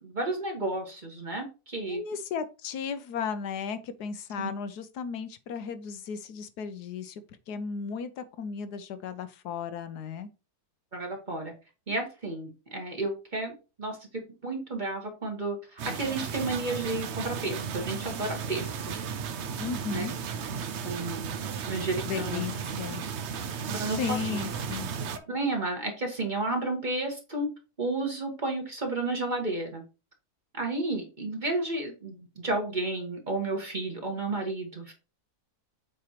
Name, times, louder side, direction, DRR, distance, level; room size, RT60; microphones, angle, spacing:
voice 1, 0.0-2.0 4.4-4.5 10.9-11.5 11.9-14.0 14.4-18.9 19.9-20.1 20.8-22.4 23.6-24.4 25.3-27.5 27.8-29.8 30.5-34.9, right 2 dB, 30° right, 1.6 m, -32 dB
voice 2, 1.9-10.3 19.6-20.2 22.1-23.0 23.9-24.9, left 6 dB, 85° left, 1.3 m, -35 dB
sound 1, 15.8-25.2, right 6 dB, 55° right, 0.8 m, -35 dB
7.6 x 4.4 x 3.0 m
omnidirectional pair, 1.7 m